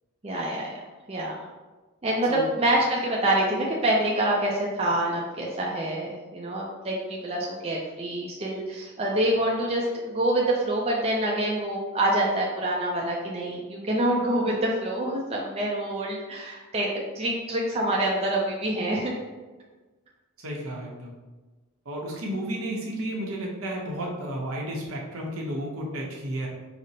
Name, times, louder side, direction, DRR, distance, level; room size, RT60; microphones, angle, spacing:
voice 1, 0.2-0.7 1.1-1.4 2.0-19.1, right 1 dB, 30° right, -3 dB, 0.4 m, -26 dB
voice 2, 20.4-21.1 21.8-26.5, right 1 dB, 75° right, -2 dB, 0.8 m, -32 dB
5.0 x 2.0 x 2.7 m, 1.3 s
head